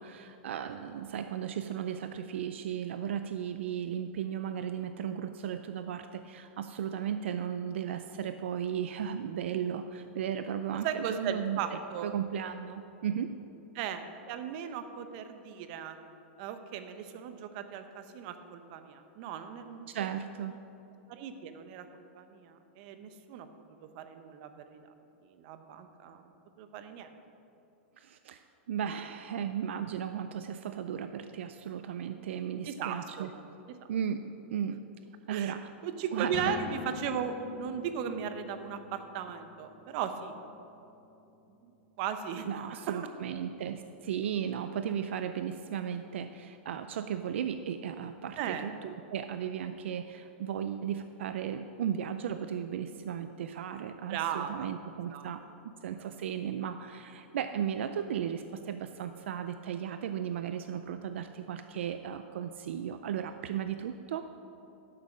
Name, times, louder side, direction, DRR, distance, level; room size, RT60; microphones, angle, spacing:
voice 1, 0.0-13.3 19.9-20.5 28.0-33.3 33.9-34.8 35.3-35.7 36.1-36.5 42.5-64.3, right 8 dB, 80° right, 9 dB, 0.5 m, -35 dB
voice 2, 10.8-12.1 13.7-16.0 16.4-20.1 21.1-23.5 23.8-24.8 25.3-26.3 26.6-27.1 32.5-33.4 35.3-35.6 35.8-40.3 41.6-43.1 48.4-48.7 54.1-54.7 55.1-55.3, right 8 dB, 50° right, 9 dB, 0.9 m, -37 dB
sound 1, 36.2-42.6, left 5 dB, 50° left, 1.6 m, -45 dB
11.0 x 7.4 x 6.2 m, 3.0 s
hypercardioid pair, 140°, 6 cm